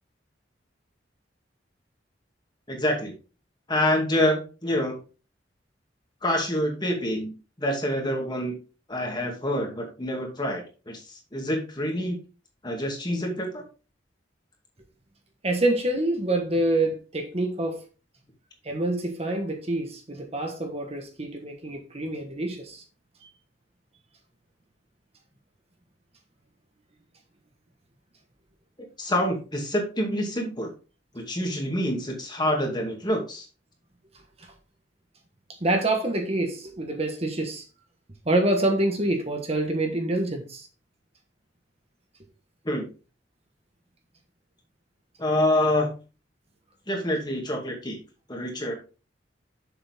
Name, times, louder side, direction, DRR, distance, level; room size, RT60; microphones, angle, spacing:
voice 1, 2.7-3.1 3.7-5.0 6.2-7.3 7.6-8.6 8.9-12.2 12.6-13.6 29.0-30.7 31.1-33.5 42.6-42.9 45.2-45.9 46.9-48.0 48.3-48.7, left 1 dB, 25° left, 2.3 m, -26 dB
voice 2, 15.4-17.8 18.6-22.8 35.6-37.6 38.2-40.7, right 1 dB, 35° right, 1.4 m, -26 dB
7.1 x 7.0 x 3.6 m
head